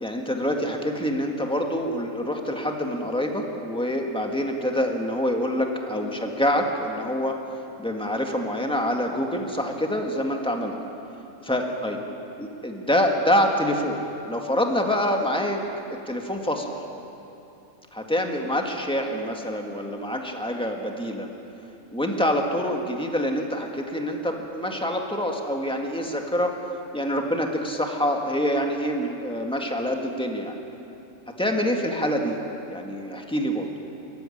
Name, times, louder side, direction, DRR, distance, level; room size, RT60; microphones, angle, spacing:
voice 1, 0.0-7.4 7.8-10.7 11.4-12.0 12.4-14.0 14.3-15.6 16.1-16.8 17.9-21.3 21.9-26.5 26.9-30.6 31.4-32.4 32.7-33.7, equal, 5° left, 2 dB, 1.8 m, -26 dB
23.5 x 14.0 x 10.0 m, 2.9 s
omnidirectional pair, 1.5 m